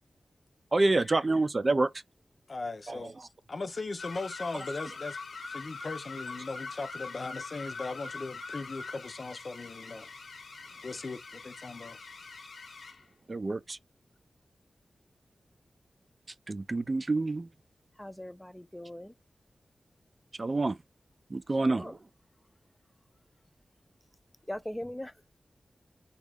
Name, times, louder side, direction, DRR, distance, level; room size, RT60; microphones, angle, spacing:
voice 1, 0.7-1.9 2.9-3.0 13.3-13.8 16.5-17.5 20.4-20.8 21.3-22.0, right 2 dB, 45° right, 0.4 m, -27 dB
voice 2, 2.5-3.1 3.5-5.2 5.4-10.1 10.8-12.0, left 3 dB, 55° left, 0.6 m, -38 dB
sound 1, 4.0-13.1, left 4 dB, 90° left, 0.8 m, -43 dB
voice 3, 18.0-19.1 21.6-21.9 24.5-25.1, left 1 dB, 10° left, 0.5 m, -40 dB
3.6 x 2.5 x 3.4 m
cardioid pair, 55°, 0 cm